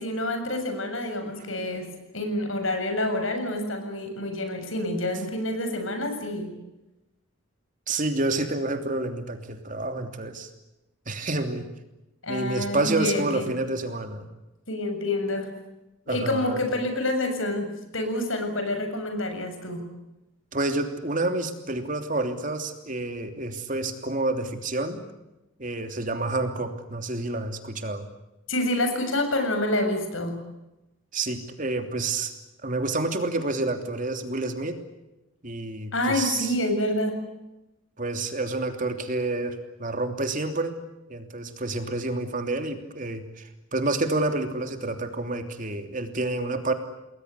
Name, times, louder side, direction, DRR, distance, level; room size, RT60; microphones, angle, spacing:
voice 1, 0.0-6.6 12.2-13.5 14.7-15.5 16.1-17.7 17.9-19.9 28.5-30.4 35.9-37.2, left 1 dB, 80° left, 6 dB, 7.2 m, -28 dB
voice 2, 7.9-10.5 11.1-11.7 12.3-14.2 16.1-16.6 20.5-25.0 25.6-28.1 31.1-32.3 32.6-34.8 35.4-36.5 38.0-40.8 41.1-46.7, right 2 dB, 40° right, 6 dB, 3.1 m, -29 dB
29.5 x 21.0 x 8.4 m, 0.96 s
head